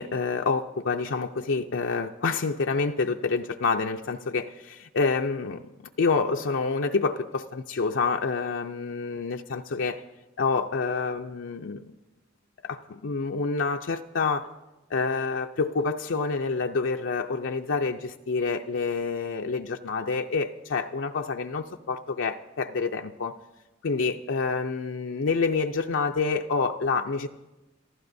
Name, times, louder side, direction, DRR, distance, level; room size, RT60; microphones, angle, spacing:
voice 1, 0.0-5.6 6.0-10.0 10.4-12.0 12.6-14.5 14.9-23.3 23.8-27.3, left 4 dB, 70° left, 3 dB, 0.5 m, -27 dB
30.0 x 15.0 x 2.7 m, 1.0 s
head